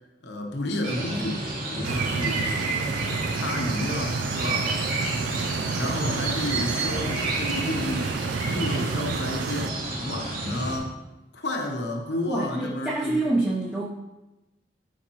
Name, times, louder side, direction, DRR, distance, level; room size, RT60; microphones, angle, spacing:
voice 1, 0.2-1.4 1.7-2.5 3.3-4.7 5.8-8.1 8.4-9.7 10.0-10.9 11.3-13.2, left 1 dB, 65° left, 2 dB, 1.0 m, -31 dB
sound 1, 0.8-10.8, right 2 dB, 45° right, 2.6 m, -30 dB
Stream, 1.8-9.7, right 5 dB, 70° right, 0.4 m, -31 dB
voice 2, 12.3-13.9, right 2 dB, 5° right, -5 dB, 0.8 m, -26 dB
13.0 x 5.0 x 3.0 m, 1.0 s
head